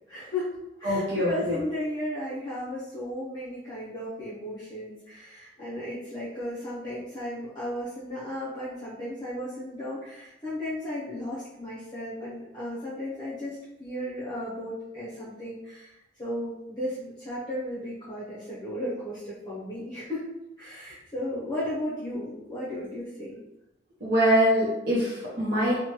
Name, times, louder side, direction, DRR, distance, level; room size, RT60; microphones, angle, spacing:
voice 1, 0.1-0.5 0.8-20.3 20.6-23.4, left 1 dB, 20° left, -11 dB, 0.7 m, -35 dB
voice 2, 0.8-1.6 24.0-25.8, equal, 60° right, -8 dB, 0.7 m, -24 dB
3.1 x 2.1 x 2.9 m, 0.93 s
head